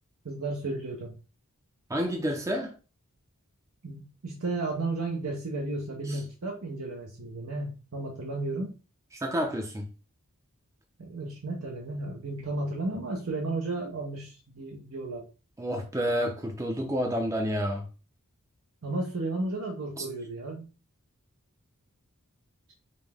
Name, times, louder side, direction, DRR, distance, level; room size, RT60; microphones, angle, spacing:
voice 1, 0.2-1.1 3.8-8.7 11.0-15.2 18.8-20.7, right 2 dB, 70° right, 0.8 m, -33 dB
voice 2, 1.9-2.7 6.1-6.2 9.1-9.9 15.6-17.8 20.0-20.1, equal, 15° right, 0.5 m, -29 dB
5.3 x 2.1 x 3.4 m
head